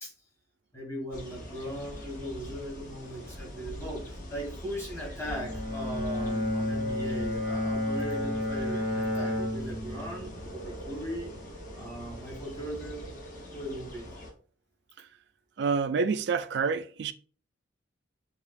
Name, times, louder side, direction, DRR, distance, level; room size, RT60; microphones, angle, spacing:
voice 1, 0.7-4.0 4.3-11.3 11.7-13.1 13.5-14.1, equal, 15° left, 1.3 m, -39 dB
Birds wind leaf walking, 1.1-14.3, equal, 40° left, 0.9 m, -43 dB
Bowed string instrument, 5.3-10.5, left 1 dB, 60° left, 1.4 m, -31 dB
voice 2, 15.6-17.1, right 5 dB, 55° right, 0.3 m, -28 dB
6.8 x 2.4 x 2.5 m
head